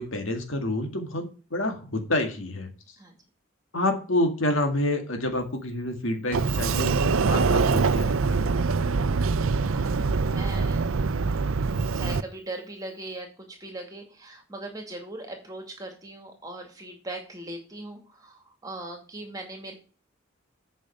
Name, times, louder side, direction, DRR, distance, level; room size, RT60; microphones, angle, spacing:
voice 1, 0.0-2.7 3.7-8.5, left 1 dB, 80° left, 5 dB, 2.0 m, -28 dB
Sliding door, 6.3-12.2, right 4 dB, 90° right, 0.6 m, -24 dB
voice 2, 9.6-10.8 11.9-19.7, right 2 dB, 20° right, 3 dB, 2.2 m, -39 dB
8.6 x 5.5 x 6.6 m, 0.37 s
head